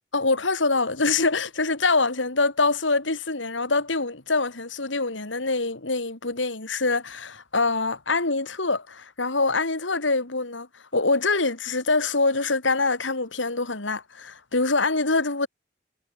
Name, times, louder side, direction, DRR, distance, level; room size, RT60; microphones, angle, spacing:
voice 1, 0.1-15.5, left 3 dB, 90° left, 3.2 m, -24 dB
head